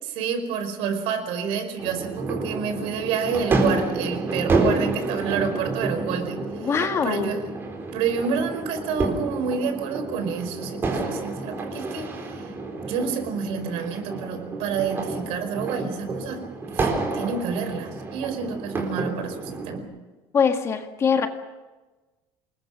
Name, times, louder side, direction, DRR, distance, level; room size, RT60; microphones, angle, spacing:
voice 1, 0.0-7.4 7.9-12.5 12.8-16.4 16.7-16.9 17.1-19.9, right 6 dB, 60° right, 8 dB, 5.1 m, -29 dB
sound 1, 1.8-19.8, right 3 dB, 20° right, 4.1 m, -29 dB
voice 2, 6.6-7.4 20.3-21.3, left 6 dB, 25° left, 6 dB, 1.7 m, -22 dB
28.5 x 21.0 x 6.2 m, 1.2 s
cardioid pair, 175°, 11 cm